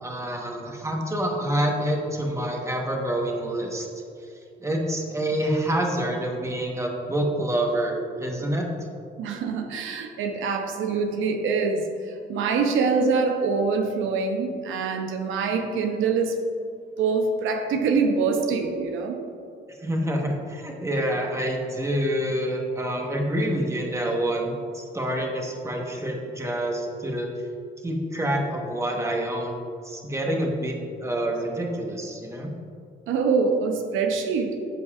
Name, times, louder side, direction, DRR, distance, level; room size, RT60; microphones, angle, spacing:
voice 1, 0.0-3.9 4.6-8.7 19.8-27.3 27.8-32.5, right 1 dB, 15° right, 0 dB, 1.2 m, -27 dB
voice 2, 9.2-16.4 17.0-19.2 33.1-34.6, right 4 dB, 85° right, 4 dB, 0.7 m, -25 dB
13.0 x 5.3 x 2.5 m, 2.5 s
cardioid pair, 90°, 20 cm